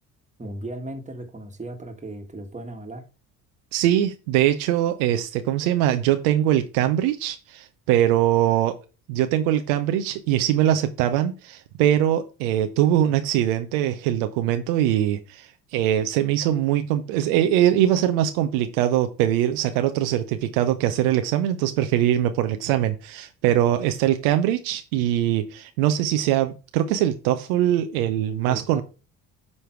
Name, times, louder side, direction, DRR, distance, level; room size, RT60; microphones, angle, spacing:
voice 1, 0.4-3.0 28.4-28.8, right 1 dB, 15° right, 5 dB, 1.6 m, -36 dB
voice 2, 3.7-8.8 9.1-28.8, right 12 dB, 70° right, 8 dB, 0.7 m, -22 dB
9.5 x 3.3 x 4.6 m, 0.33 s
hypercardioid pair, 60°, 46 cm